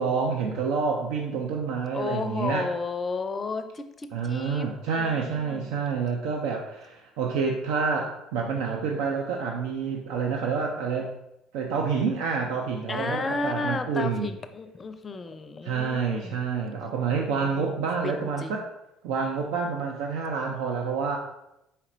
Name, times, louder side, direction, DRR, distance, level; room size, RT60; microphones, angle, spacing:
voice 1, 0.0-2.7 4.1-11.1 11.5-14.3 15.6-18.7 19.0-21.2, right 5 dB, 75° right, 1 dB, 0.4 m, -28 dB
voice 2, 1.9-4.7 4.9-5.7 12.9-16.4 17.4-17.7 18.0-18.6, left 4 dB, 35° left, 9 dB, 0.4 m, -33 dB
4.2 x 4.1 x 2.5 m, 0.87 s
hypercardioid pair, 60°, 0 cm